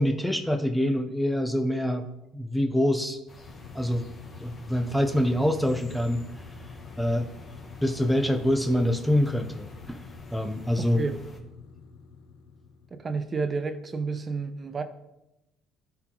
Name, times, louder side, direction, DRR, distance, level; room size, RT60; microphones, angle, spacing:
voice 1, 0.0-2.1 2.3-3.2 3.7-4.1 4.4-6.3 7.0-7.3 7.8-10.0 10.3-11.0, left 1 dB, 5° left, 6 dB, 0.6 m, -25 dB
sound 1, 3.3-11.4, left 2 dB, 30° left, 1.3 m, -49 dB
sound 2, 3.5-13.3, left 5 dB, 85° left, 0.8 m, -46 dB
voice 2, 10.8-11.2 12.9-14.8, right 4 dB, 30° right, 9 dB, 0.8 m, -31 dB
13.0 x 4.7 x 3.8 m, 0.93 s
cardioid pair, 100°, 0 cm